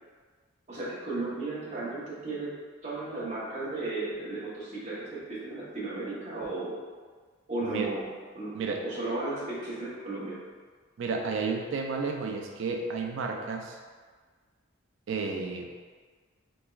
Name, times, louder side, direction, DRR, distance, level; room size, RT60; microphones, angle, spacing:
voice 1, 0.7-2.5 2.8-6.7 7.5-8.1 8.3-10.4, right 2 dB, 35° right, -8 dB, 0.8 m, -35 dB
voice 2, 8.5-8.9 11.0-13.8 15.1-15.7, right 4 dB, 65° right, 2 dB, 0.4 m, -32 dB
3.4 x 3.0 x 2.3 m, 1.5 s
head